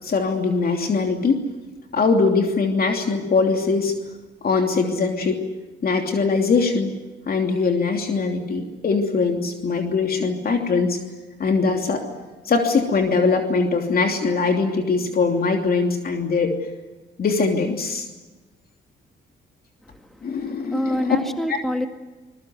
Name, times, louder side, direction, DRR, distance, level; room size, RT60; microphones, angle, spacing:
voice 1, 0.0-1.4 1.9-4.0 4.4-5.5 5.8-6.9 7.3-11.0 11.4-12.0 12.4-16.5 17.2-18.1 20.2-21.2 21.5-21.6, left 4 dB, 50° left, 3 dB, 3.0 m, -21 dB
voice 2, 19.9-21.9, equal, ahead, 5 dB, 1.9 m, -27 dB
25.5 x 21.5 x 8.1 m, 1.2 s
cardioid pair, 90°, 20 cm